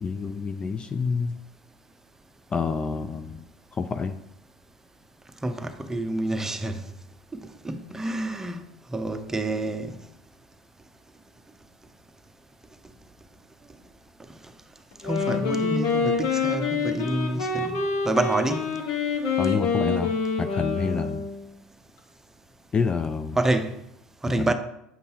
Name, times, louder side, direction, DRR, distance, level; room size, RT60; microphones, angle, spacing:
voice 1, 0.0-1.4 2.5-3.4 3.7-4.2 19.4-21.3 22.7-23.4 24.4-24.5, left 5 dB, 25° left, 0.4 m, -28 dB
voice 2, 5.4-6.8 7.3-8.6 8.9-10.0 15.0-17.8 18.0-18.8 23.4-23.7 24.2-24.5, right 2 dB, 10° right, 0.7 m, -28 dB
Wind instrument woodwind instrument, 14.9-21.4, left 5 dB, 65° left, 1.2 m, -26 dB
7.3 x 5.3 x 2.8 m
hypercardioid pair, 75°, 4 cm